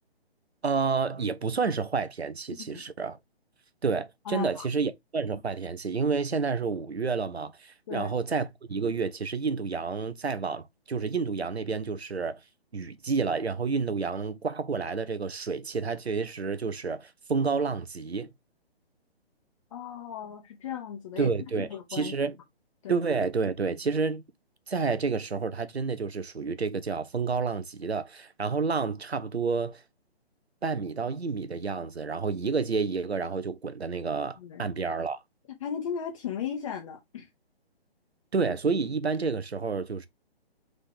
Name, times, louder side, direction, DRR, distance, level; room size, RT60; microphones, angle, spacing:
voice 1, 0.6-3.2 3.8-12.4 12.7-18.3 21.2-22.4 22.9-24.2 24.7-29.8 30.6-35.2 38.3-40.1, right 4 dB, 85° right, 0.7 m, -29 dB
voice 2, 4.2-4.7 7.9-8.1 19.7-22.1 22.8-23.0 34.4-34.7 35.6-37.3, left 8 dB, 30° left, 0.9 m, -36 dB
3.8 x 3.3 x 3.7 m
figure-of-eight pair, 135°, 31 cm